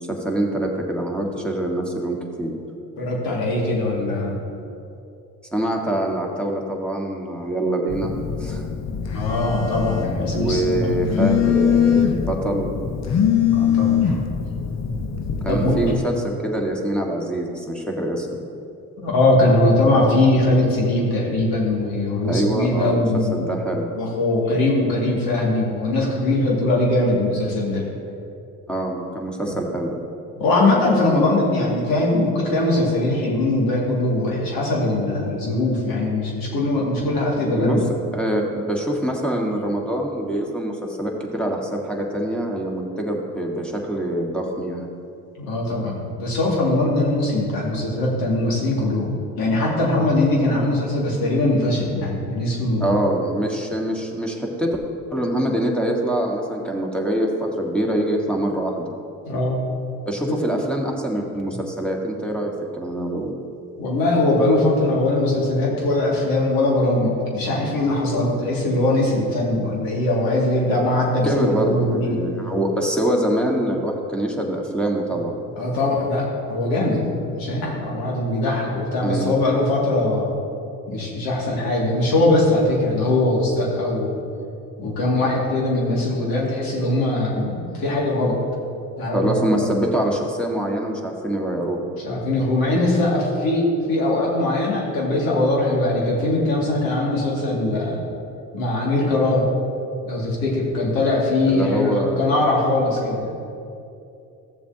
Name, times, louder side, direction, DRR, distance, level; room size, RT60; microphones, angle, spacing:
voice 1, 0.0-2.5 5.5-8.1 8.4-8.6 10.3-12.7 15.4-18.3 22.2-23.0 23.3-23.9 28.7-29.9 37.5-37.8 38.1-40.7 41.0-44.9 52.8-54.8 55.1-58.9 60.0-63.3 71.2-75.3 79.0-79.3 89.1-91.8 101.5-102.4, right 1 dB, 5° left, 0 dB, 1.7 m, -24 dB
voice 2, 3.0-4.4 9.1-11.4 13.4-14.2 14.8-14.9 15.5-15.8 19.0-23.6 23.9-27.9 29.5-29.6 30.4-37.8 45.4-52.9 59.2-59.6 63.8-72.2 75.6-80.3 80.9-84.2 84.8-88.4 89.0-89.7 92.0-98.0 98.5-99.5 100.0-103.3, left 2 dB, 75° left, -3 dB, 2.4 m, -21 dB
Telephone, 7.9-16.0, left 8 dB, 45° left, 0.9 m, -22 dB
14.0 x 7.1 x 2.9 m, 2.6 s
supercardioid pair, 60°, 36 cm